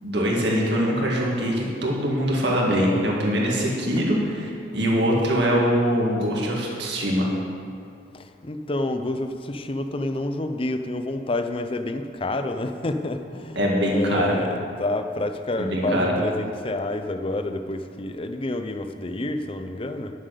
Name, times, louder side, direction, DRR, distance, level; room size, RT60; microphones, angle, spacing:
voice 1, 0.0-7.3 13.6-14.3 15.6-16.1, equal, 60° right, -2 dB, 2.0 m, -23 dB
voice 2, 8.4-20.1, left 2 dB, 30° left, 7 dB, 0.6 m, -29 dB
11.0 x 7.4 x 6.7 m, 2.3 s
head